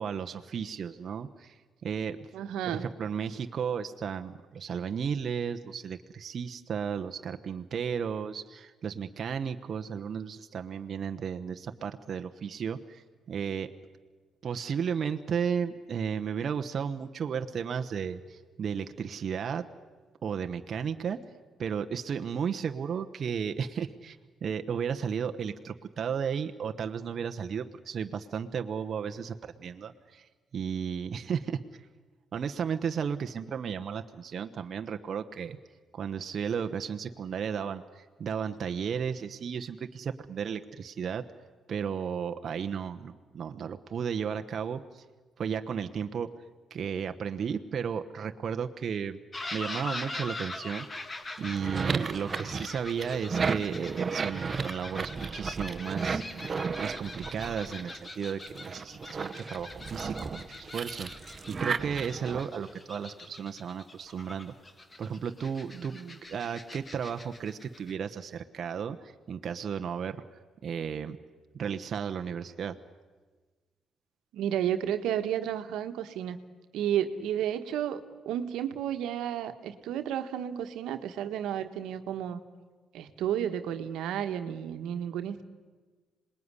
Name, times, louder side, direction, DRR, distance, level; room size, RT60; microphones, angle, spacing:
voice 1, 0.0-2.2 2.6-13.7 14.4-19.7 20.2-21.2 21.6-31.6 32.3-35.6 35.9-41.2 41.7-45.0 45.4-46.3 46.7-49.2 49.5-50.9 51.4-56.4 56.8-64.5 65.0-66.0 66.3-70.2 70.6-71.2 71.5-72.7, right 7 dB, 55° right, 6 dB, 1.1 m, -34 dB
voice 2, 2.3-2.9 65.7-66.2 74.3-76.4 76.7-82.4 82.9-85.4, right 10 dB, 85° right, 8 dB, 1.5 m, -32 dB
sound 1, 49.3-67.9, left 2 dB, 25° left, 2.1 m, -43 dB
sound 2, 51.4-58.1 58.5-62.4, right 5 dB, 35° right, 1.2 m, -34 dB
26.5 x 20.5 x 9.8 m, 1.4 s
cardioid pair, 90°, 0 cm